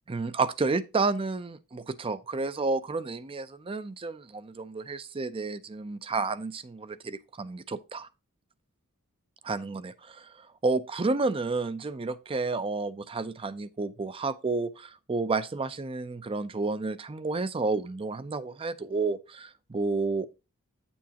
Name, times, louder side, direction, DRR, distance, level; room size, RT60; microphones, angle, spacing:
voice 1, 0.1-8.1 9.4-20.3, right 3 dB, 25° right, 0.5 m, -31 dB
9.3 x 7.0 x 2.8 m
head